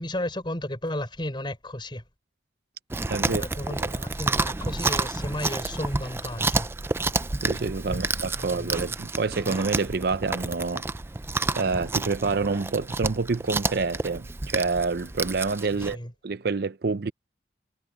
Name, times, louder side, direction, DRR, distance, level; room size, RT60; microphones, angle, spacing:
voice 1, 0.0-2.1 3.2-6.7 7.9-8.1 8.4-8.8 15.7-16.1, left 1 dB, 25° left, 5.9 m, -34 dB
Chewing mastication, 2.9-15.9, right 3 dB, 15° right, 0.4 m, -30 dB
voice 2, 3.1-3.4 7.4-10.8 11.5-16.0 16.2-17.1, right 4 dB, 60° right, 0.6 m, -27 dB
head